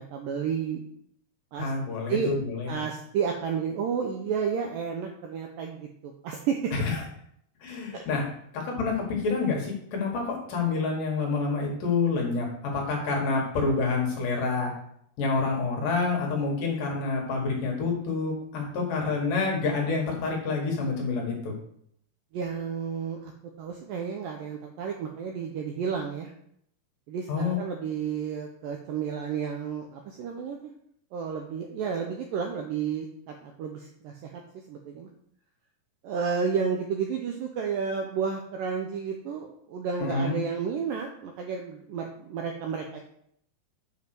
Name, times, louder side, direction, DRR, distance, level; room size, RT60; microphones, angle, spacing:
voice 1, 0.1-0.8 1.5-1.7 2.1-2.3 2.7-6.7 7.9-8.0 22.3-23.3 23.6-26.3 27.1-30.7 31.1-34.4 34.7-35.1 36.0-43.0, right 6 dB, 80° right, 2 dB, 2.0 m, -31 dB
voice 2, 1.6-2.8 6.7-7.0 7.6-8.2 8.5-12.5 12.7-14.7 15.2-21.5 27.3-27.6 40.0-40.4, left 4 dB, 60° left, -1 dB, 3.0 m, -28 dB
7.3 x 5.4 x 6.0 m, 0.69 s
omnidirectional pair, 4.8 m